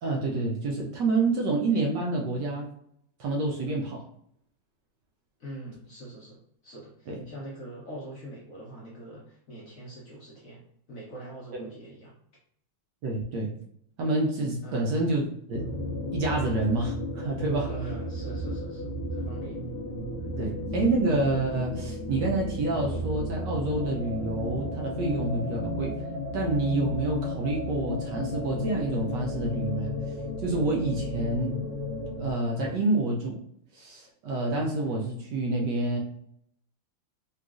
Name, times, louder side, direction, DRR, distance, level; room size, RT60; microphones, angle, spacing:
voice 1, 0.0-2.7 3.2-4.0 7.1-7.2 11.5-11.6 13.0-13.5 14.0-15.2 15.5-15.6 16.1-17.7 20.4-25.9 26.3-29.9 30.4-31.6 32.2-33.4 33.7-36.0, right 2 dB, 75° right, -1 dB, 1.1 m, -28 dB
voice 2, 5.4-10.6 10.9-12.1 14.6-14.9 17.7-19.6 20.2-20.3, right 1 dB, 60° left, -6 dB, 0.9 m, -43 dB
sound 1, 15.5-32.3, left 1 dB, 75° left, 1.3 m, -33 dB
3.8 x 2.3 x 2.4 m, 0.69 s
omnidirectional pair, 2.2 m